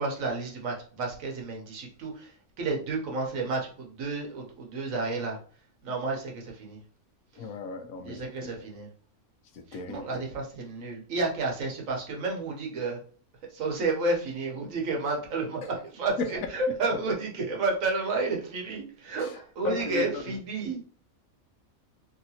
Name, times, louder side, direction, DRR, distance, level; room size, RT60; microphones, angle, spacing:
voice 1, 0.0-5.4 5.8-6.8 8.0-8.9 9.7-13.0 13.5-20.8, right 3 dB, 75° right, 0 dB, 1.2 m, -31 dB
voice 2, 7.4-8.6 9.7-10.3 19.2-19.4 19.6-20.2, left 3 dB, 80° left, 6 dB, 1.1 m, -36 dB
3.1 x 2.8 x 2.8 m, 0.43 s
omnidirectional pair, 1.4 m